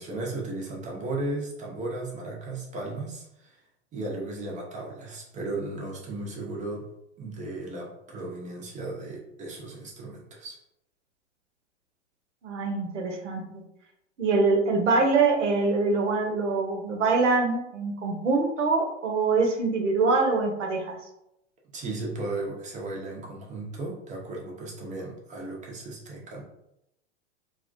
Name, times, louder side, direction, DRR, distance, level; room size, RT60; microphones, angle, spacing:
voice 1, 0.0-3.6 3.9-6.9 7.2-10.6 21.7-26.4, right 2 dB, 20° right, -2 dB, 0.5 m, -35 dB
voice 2, 12.4-13.6 14.2-20.9, right 3 dB, 85° right, 2 dB, 0.6 m, -24 dB
2.3 x 2.1 x 2.5 m, 0.83 s
hypercardioid pair, 100°, 35 cm